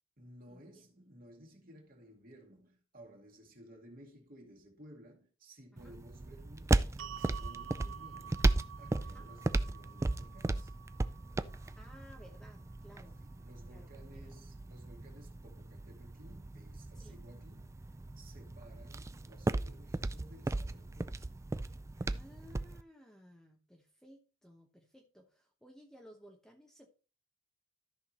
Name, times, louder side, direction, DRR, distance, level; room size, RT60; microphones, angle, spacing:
voice 1, 0.2-8.4 8.8-10.7 13.2-17.9 18.2-21.3, equal, 45° right, 2.3 m, -56 dB
sound 1, 5.8-22.8, right 2 dB, 15° right, 0.3 m, -36 dB
sound 2, 7.0-13.2, right 9 dB, 70° right, 0.5 m, -50 dB
voice 2, 11.8-13.2 13.7-14.4 17.0-17.2 22.0-26.9, equal, 5° left, 0.9 m, -58 dB
13.5 x 5.8 x 3.0 m
head